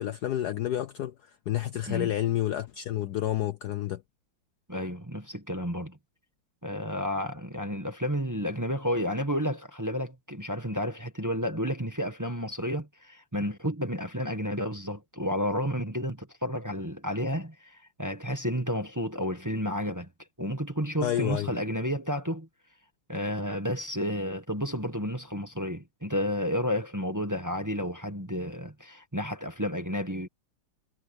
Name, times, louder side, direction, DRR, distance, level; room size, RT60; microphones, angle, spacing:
voice 1, 0.0-4.0 21.0-21.5, left 12 dB, 65° left, 1.0 m, -30 dB
voice 2, 4.7-6.0 6.6-20.1 20.4-22.5 23.1-30.3, equal, 10° right, 1.3 m, -31 dB
omnidirectional pair, 2.2 m